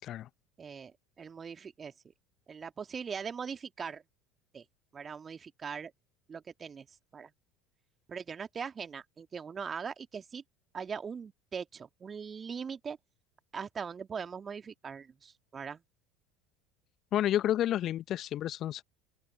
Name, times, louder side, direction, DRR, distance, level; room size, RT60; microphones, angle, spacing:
voice 1, 0.6-1.9 2.5-4.0 4.5-4.6 4.9-5.9 6.3-7.3 8.1-10.4 10.7-13.0 13.5-15.8, right 6 dB, 30° right, 2.4 m, -41 dB
voice 2, 17.1-18.8, left 12 dB, 45° left, 1.1 m, -30 dB
open air
figure-of-eight pair, 65°, 0 cm